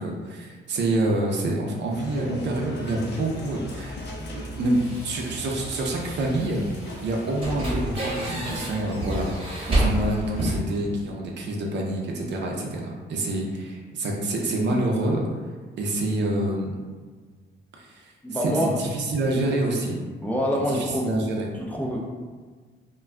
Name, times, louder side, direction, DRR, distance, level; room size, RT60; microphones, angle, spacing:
voice 1, 0.0-4.0 4.3-6.6 7.0-9.3 9.7-15.2 15.8-16.8 17.8-18.1 18.4-20.0 20.5-21.5, right 1 dB, 65° right, -1 dB, 0.6 m, -27 dB
sound 1, 1.9-10.4, left 1 dB, 60° left, 0.6 m, -40 dB
sound 2, 3.2-10.6, right 1 dB, 30° right, 0.9 m, -30 dB
voice 2, 18.2-18.7 20.2-21.1 21.5-22.0, equal, 5° left, -3 dB, 0.4 m, -26 dB
2.2 x 2.2 x 3.4 m, 1.5 s
cardioid pair, 90°, 20 cm